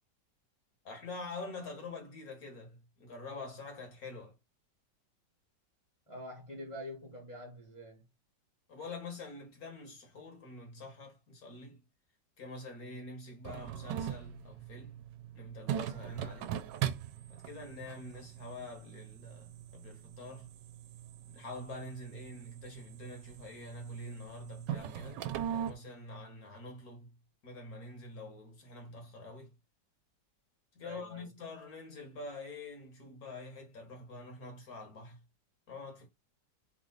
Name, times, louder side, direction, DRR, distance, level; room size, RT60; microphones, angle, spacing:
voice 1, 0.9-4.4 8.7-11.8 12.4-15.0 15.3-16.6 17.3-20.5 21.2-27.1 27.4-29.5 30.8-35.2 35.7-36.1, left 2 dB, 55° left, 1.9 m, -46 dB
voice 2, 6.1-8.0 30.8-31.3, left 1 dB, 20° left, 1.1 m, -46 dB
sound 1, 13.4-25.7, right 10 dB, 80° right, 1.2 m, -41 dB
3.9 x 3.1 x 3.9 m
omnidirectional pair, 1.9 m